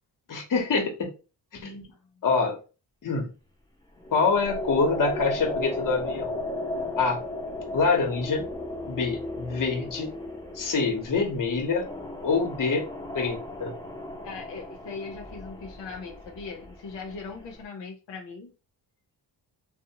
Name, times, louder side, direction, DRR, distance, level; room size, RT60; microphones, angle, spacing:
voice 1, 0.3-1.1 1.5-1.9 2.2-2.6 3.0-3.3 4.1-6.4 7.0-7.2 7.7-8.4 8.9-10.1 10.6-11.9 12.2-12.8 13.1-13.7, left 4 dB, 50° left, 0.9 m, -25 dB
sound 1, 4.0-17.6, left 2 dB, 10° left, 0.8 m, -36 dB
voice 2, 14.2-18.5, left 4 dB, 85° left, 0.7 m, -40 dB
2.7 x 2.0 x 2.7 m
cardioid pair, 75°, 42 cm